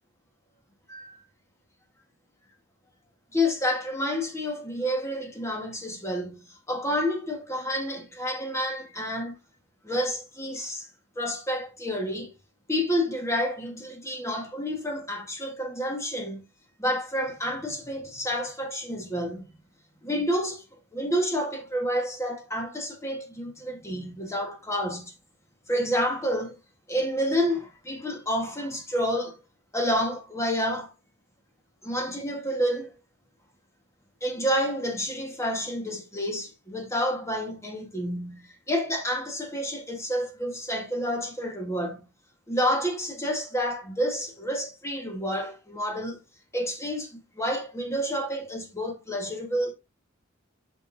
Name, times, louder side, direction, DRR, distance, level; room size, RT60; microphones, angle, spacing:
voice 1, 0.9-1.2 3.3-9.3 9.8-10.9 11.1-12.3 12.7-16.4 16.8-19.4 20.0-20.6 20.9-25.1 25.7-26.6 26.9-29.4 29.7-30.9 31.8-32.9 34.2-42.1 42.5-46.2 46.5-49.7, equal, 15° left, 1.4 m, -29 dB
7.0 x 5.7 x 2.7 m
head